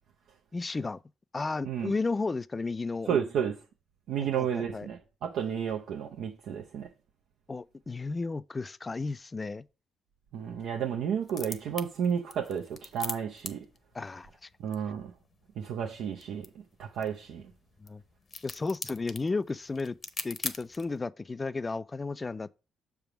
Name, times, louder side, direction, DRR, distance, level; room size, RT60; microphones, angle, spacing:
voice 1, 0.5-1.0 1.3-3.1 4.2-4.9 7.5-9.6 13.9-14.5 17.8-18.0 18.4-20.0 20.2-22.5, left 3 dB, 25° left, 0.3 m, -33 dB
voice 2, 3.1-3.6 4.1-6.9 10.3-13.6 14.6-15.1 15.6-16.5 16.8-17.4, right 8 dB, 80° right, 0.6 m, -32 dB
sound 1, 11.2-21.0, left 4 dB, 40° left, 0.8 m, -43 dB
6.7 x 3.5 x 5.9 m
cardioid pair, 90°, 0 cm